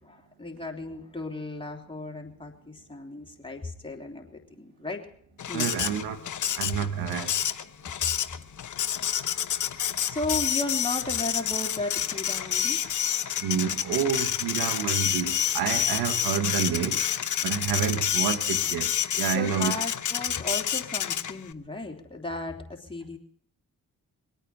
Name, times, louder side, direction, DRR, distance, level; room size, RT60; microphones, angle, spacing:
voice 1, 0.0-5.0 5.5-5.7 10.1-12.8 19.3-23.2, left 2 dB, 15° left, 3.3 m, -35 dB
Printer, 5.4-21.5, left 9 dB, 55° left, 0.9 m, -28 dB
voice 2, 5.5-6.2 6.6-7.4 13.4-17.0 17.4-19.7, right 8 dB, 85° right, 1.2 m, -29 dB
23.0 x 9.0 x 5.9 m
supercardioid pair, 50°, 36 cm